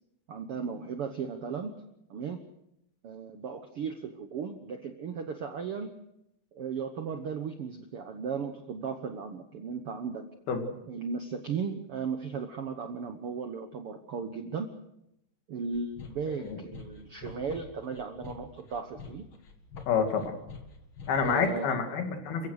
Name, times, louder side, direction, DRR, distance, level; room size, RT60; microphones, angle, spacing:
voice 1, 0.3-1.8 2.1-2.4 3.0-6.0 6.5-10.3 10.9-14.7 15.5-19.3 21.2-21.7, right 5 dB, 70° right, 7 dB, 1.3 m, -36 dB
sound 1, 15.7-21.6, left 5 dB, 45° left, 2.2 m, -46 dB
voice 2, 19.9-20.3 21.1-22.5, left 6 dB, 80° left, 5 dB, 4.3 m, -28 dB
29.0 x 16.0 x 6.5 m, 0.81 s
omnidirectional pair, 4.3 m